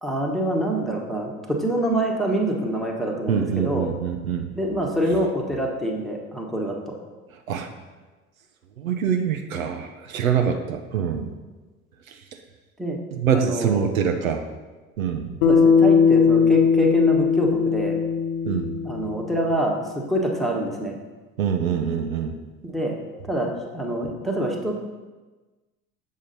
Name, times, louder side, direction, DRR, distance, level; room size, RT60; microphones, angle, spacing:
voice 1, 0.0-3.9 4.5-6.9 12.8-13.0 13.3-13.9 15.5-18.0 18.8-21.0 22.6-22.9 23.3-24.9, right 1 dB, ahead, -1 dB, 1.2 m, -26 dB
voice 2, 3.3-4.5 7.5-7.7 8.8-11.3 13.1-14.4 15.0-15.3 18.4-18.7 21.4-22.3, right 7 dB, 70° right, 5 dB, 0.7 m, -24 dB
Bass guitar, 15.4-19.8, left 6 dB, 50° left, 1.0 m, -19 dB
7.3 x 6.2 x 4.1 m, 1.2 s
figure-of-eight pair, 65°, 42 cm